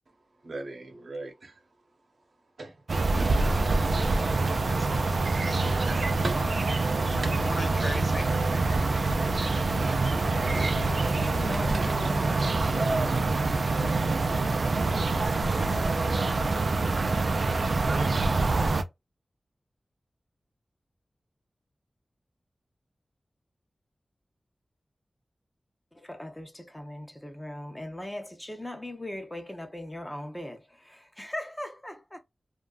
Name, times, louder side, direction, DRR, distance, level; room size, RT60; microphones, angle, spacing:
voice 1, 0.4-1.5 2.6-2.8 3.1-3.5 4.5-4.6 5.4-6.6 7.2-7.4 9.8-10.0 11.7-12.1, right 2 dB, 80° right, 0.8 m, -39 dB
sound 1, 2.9-18.8, right 3 dB, 65° right, 0.3 m, -25 dB
voice 2, 4.7-5.9 6.4-6.5 7.4-8.3, left 1 dB, 30° left, 1.0 m, -39 dB
voice 3, 11.3-13.1 26.0-32.2, left 1 dB, 15° left, 0.5 m, -39 dB
2.6 x 2.2 x 2.3 m
wide cardioid pair, 90°, 0 cm